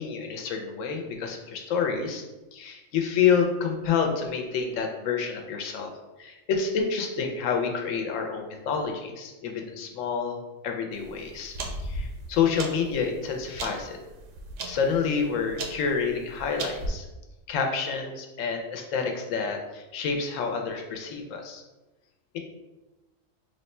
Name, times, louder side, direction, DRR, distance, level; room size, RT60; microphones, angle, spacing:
voice 1, 0.0-2.2 2.5-5.9 6.2-10.4 10.6-11.6 11.8-14.0 14.7-17.1 17.5-21.6, left 6 dB, 80° left, 3 dB, 0.9 m, -28 dB
sound 1, 11.0-16.9, right 2 dB, 75° right, 0.9 m, -37 dB
3.1 x 2.1 x 4.1 m, 1.1 s
omnidirectional pair, 1.4 m